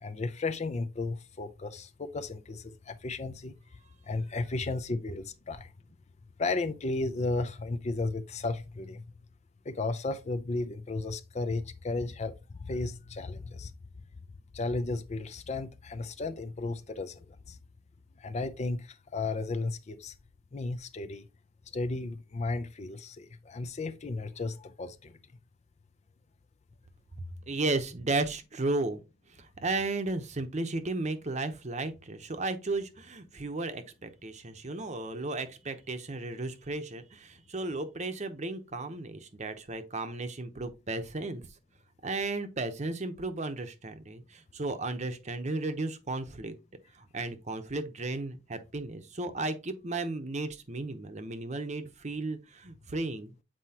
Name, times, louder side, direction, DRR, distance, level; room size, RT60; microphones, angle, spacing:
voice 1, 0.0-3.5 4.1-5.7 6.4-9.0 9.7-13.7 14.5-17.6 18.2-20.1 20.5-21.3 21.7-25.2, left 3 dB, 35° left, 0.5 m, -34 dB
voice 2, 27.5-29.0 29.3-41.4 42.0-46.5 46.9-53.3, right 2 dB, 35° right, 0.8 m, -34 dB
7.7 x 4.5 x 2.8 m
head